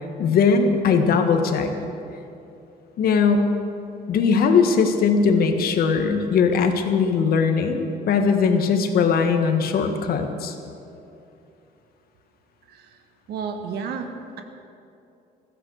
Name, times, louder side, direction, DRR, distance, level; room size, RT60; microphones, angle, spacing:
voice 1, 0.2-1.7 3.0-3.5 4.1-10.5, left 5 dB, 60° left, 5 dB, 1.7 m, -20 dB
voice 2, 12.7-13.0 13.3-14.1, right 6 dB, 70° right, 5 dB, 1.5 m, -31 dB
15.0 x 14.0 x 6.6 m, 2.7 s
cardioid pair, 110°, 17 cm